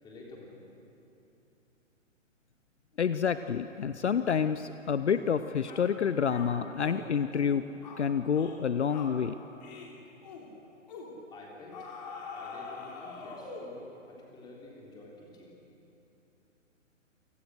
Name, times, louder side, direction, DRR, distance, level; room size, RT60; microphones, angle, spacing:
voice 1, 0.0-0.6 11.3-11.9 12.3-15.6, left 2 dB, 10° left, -3 dB, 3.7 m, -50 dB
voice 2, 3.0-7.6 8.0-9.4, left 7 dB, 60° left, 12 dB, 0.7 m, -28 dB
sound 1, 5.1-5.3 5.7-5.9 6.3-7.0 7.3-7.5 7.8-8.0 8.3-8.6 8.9-9.2 9.6-9.9 10.2-10.5 10.9-11.1 11.7-13.8, left 4 dB, 35° left, 3.2 m, -43 dB
29.0 x 18.5 x 6.4 m, 2.9 s
figure-of-eight pair, 130°, 38 cm